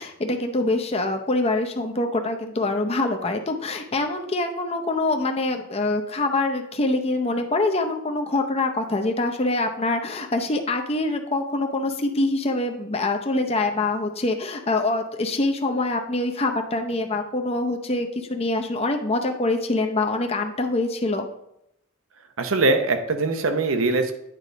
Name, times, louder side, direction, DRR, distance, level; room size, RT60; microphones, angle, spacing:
voice 1, 0.0-21.3, left 2 dB, 30° left, 4 dB, 0.6 m, -25 dB
voice 2, 22.4-24.1, right 3 dB, 75° right, 7 dB, 0.8 m, -22 dB
9.1 x 4.0 x 5.0 m, 0.79 s
head